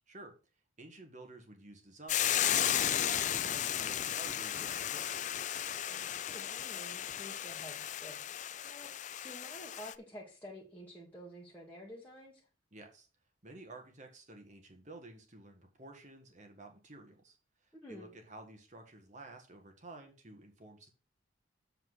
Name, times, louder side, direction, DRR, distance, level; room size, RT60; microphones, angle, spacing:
voice 1, 0.8-5.3 12.7-13.1 13.4-20.9, right 2 dB, 35° right, 4 dB, 1.7 m, -52 dB
Hiss / Boiling, 2.1-9.9, left 11 dB, 35° left, 0.3 m, -34 dB
voice 2, 5.9-8.9 9.2-12.4 17.8-18.1, equal, 10° left, -6 dB, 1.6 m, -50 dB
7.7 x 4.4 x 6.3 m, 0.34 s
head